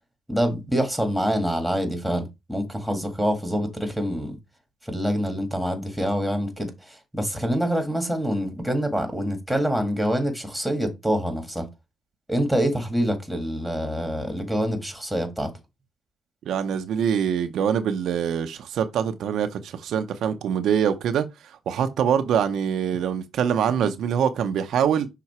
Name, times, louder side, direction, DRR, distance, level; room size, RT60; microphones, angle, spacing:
voice 1, 0.3-4.4 4.8-11.6 12.3-15.5, equal, ahead, 1.8 m, -26 dB
voice 2, 16.5-25.1, right 8 dB, 70° right, 0.7 m, -24 dB
5.9 x 3.8 x 4.3 m
cardioid pair, 105°, 0 cm